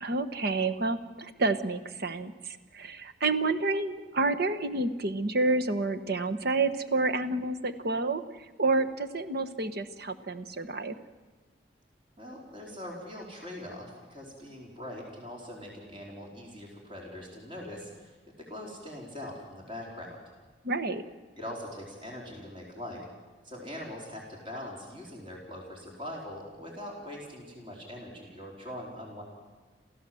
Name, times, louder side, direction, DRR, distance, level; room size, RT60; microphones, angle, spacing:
voice 1, 0.0-8.2 8.6-10.9 20.6-21.0, right 3 dB, 60° right, 8 dB, 1.3 m, -29 dB
voice 2, 12.2-20.2 21.4-23.1 23.4-29.2, left 1 dB, 30° right, -2 dB, 4.6 m, -42 dB
28.0 x 15.5 x 7.8 m, 1.3 s
head